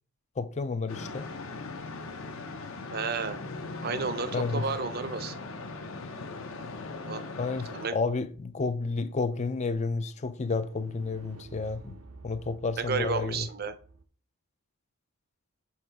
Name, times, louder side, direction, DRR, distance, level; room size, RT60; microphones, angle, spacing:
voice 1, 0.4-1.3 4.3-4.7 7.4-12.0 12.2-13.5, left 4 dB, 30° left, 0.4 m, -31 dB
sound 1, 0.9-7.9, left 3 dB, 65° left, 0.8 m, -39 dB
voice 2, 2.9-3.4 3.8-5.4 7.0-7.2 7.7-8.0 12.8-13.7, right 5 dB, 45° right, 0.6 m, -32 dB
sound 2, 8.5-14.0, right 3 dB, 75° right, 0.7 m, -52 dB
7.3 x 3.6 x 4.4 m
head